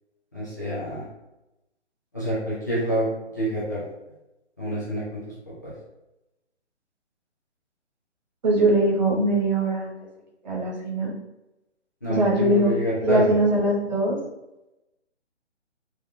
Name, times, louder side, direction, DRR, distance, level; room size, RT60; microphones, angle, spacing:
voice 1, 0.3-1.0 2.1-3.1 3.3-3.8 4.6-5.2 5.6-5.7 12.0-13.3, equal, 15° left, -12 dB, 0.5 m, -27 dB
voice 2, 8.4-9.9 10.4-11.1 12.1-12.7 13.0-14.2, right 1 dB, 40° right, -3 dB, 0.8 m, -21 dB
3.4 x 2.1 x 2.6 m, 0.95 s
figure-of-eight pair, 145°, 36 cm